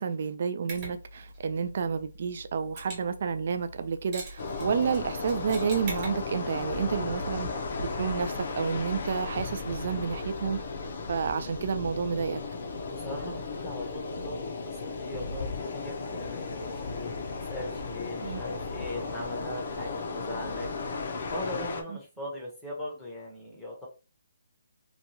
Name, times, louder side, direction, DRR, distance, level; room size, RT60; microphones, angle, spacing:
voice 1, 0.0-7.5 7.8-10.6 11.1-12.4 18.2-18.4 21.9-22.0, right 6 dB, 45° right, 0.3 m, -30 dB
Mechanisms, 0.7-10.6, right 1 dB, 25° right, 1.0 m, -46 dB
sound 1, 4.4-21.8, left 4 dB, 50° left, 0.6 m, -35 dB
voice 2, 12.9-14.4 14.6-17.2 17.5-20.7 21.0-23.9, left 1 dB, 5° left, 0.7 m, -39 dB
2.9 x 2.3 x 2.7 m
hypercardioid pair, 170°, 0 cm